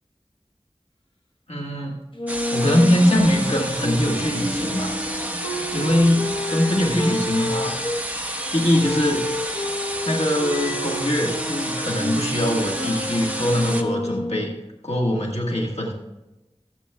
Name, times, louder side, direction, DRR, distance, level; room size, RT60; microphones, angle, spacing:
voice 1, 1.5-2.0 2.5-4.9 5.7-7.7 8.5-9.3 10.1-14.5 14.8-15.9, left 1 dB, 75° left, -1 dB, 1.7 m, -22 dB
Wind instrument woodwind instrument, 2.1-8.0 8.8-14.6, equal, 50° left, 1.3 m, -30 dB
sound 1, 2.3-13.8, right 1 dB, 15° right, 1.1 m, -30 dB
20.0 x 8.2 x 2.3 m, 1.0 s
wide cardioid pair, 45°, 11 cm